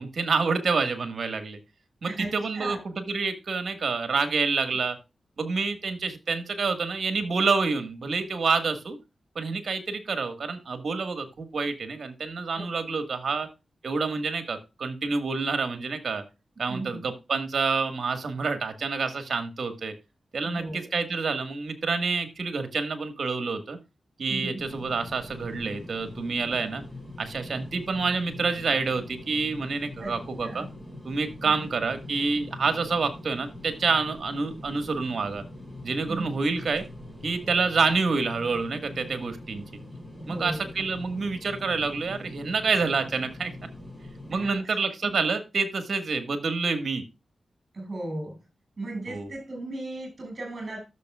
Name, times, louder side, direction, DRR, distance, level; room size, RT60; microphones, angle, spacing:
voice 1, 0.0-1.6 2.0-2.8 3.1-5.0 5.4-9.0 9.4-13.5 13.8-16.2 16.6-19.9 20.3-23.8 24.2-26.8 27.2-30.7 31.0-35.4 35.8-36.8 37.2-39.6 40.3-43.5 44.3-47.0 49.1-49.3, right 4 dB, 65° right, 1.7 m, -28 dB
voice 2, 2.1-2.8 12.5-12.6 16.7-17.1 20.4-20.9 24.3-24.7 30.0-30.1 30.4-30.7 31.4-31.5 36.1-36.3 40.1-40.7 44.3-45.2 47.7-48.4 48.8-50.8, right 2 dB, 50° right, 6.4 m, -36 dB
sound 1, 24.6-44.5, left 1 dB, 5° right, 5.6 m, -43 dB
13.5 x 6.8 x 2.4 m
cardioid pair, 50°, 0 cm